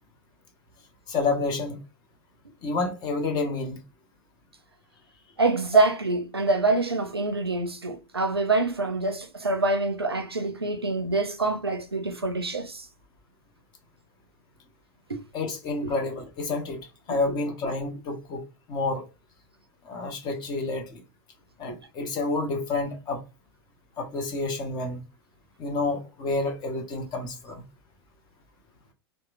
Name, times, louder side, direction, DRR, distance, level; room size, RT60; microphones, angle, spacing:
voice 1, 1.1-1.8 2.6-3.8 15.3-16.8 17.1-18.4 18.7-19.0 19.8-21.0 21.6-23.2 24.0-25.0 25.6-27.6, left 3 dB, 35° left, 0.9 m, -29 dB
voice 2, 5.4-12.9 15.1-15.2 21.7-21.8, right 3 dB, 90° right, 0.4 m, -25 dB
2.9 x 2.2 x 2.4 m
figure-of-eight pair, 90°, 13 cm